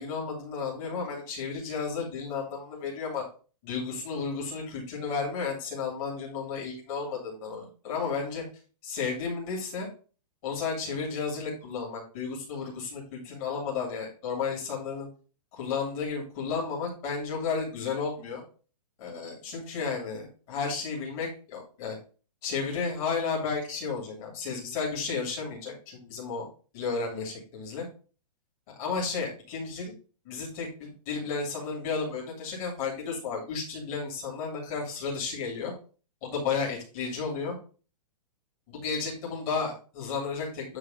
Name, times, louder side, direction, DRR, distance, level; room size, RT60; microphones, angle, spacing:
voice 1, 0.0-3.2 3.6-8.4 8.8-9.9 10.4-15.1 15.5-18.4 19.0-22.0 22.4-26.5 26.7-27.8 28.7-29.9 30.2-35.7 36.2-37.5 38.7-40.8, left 5 dB, 20° left, -2 dB, 2.7 m, -33 dB
9.5 x 3.5 x 5.0 m, 0.37 s
hypercardioid pair, 180°, 20 cm